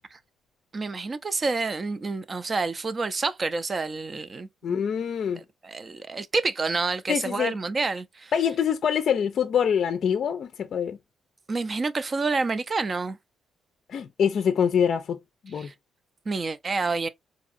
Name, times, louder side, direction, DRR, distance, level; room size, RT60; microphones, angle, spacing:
voice 1, 0.7-4.8 5.4-8.3 11.5-13.2 15.5-15.7 16.3-17.1, right 3 dB, 35° right, 0.5 m, -28 dB
voice 2, 4.6-5.4 7.1-7.6 8.3-11.0 13.9-15.2 15.4-15.7, left 8 dB, 60° left, 0.4 m, -25 dB
4.0 x 2.7 x 2.5 m
cardioid pair, 90°, 0 cm